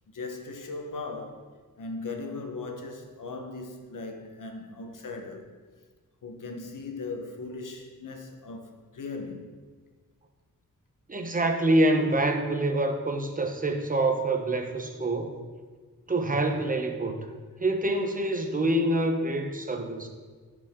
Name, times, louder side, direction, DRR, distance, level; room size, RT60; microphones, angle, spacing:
voice 1, 0.1-5.5 6.2-9.5, left 3 dB, 70° left, 1.1 m, -38 dB
voice 2, 11.1-15.4 16.1-17.3 17.6-20.1, right 1 dB, 25° right, 0.8 m, -26 dB
14.5 x 5.0 x 3.7 m
wide cardioid pair, 150°, 33 cm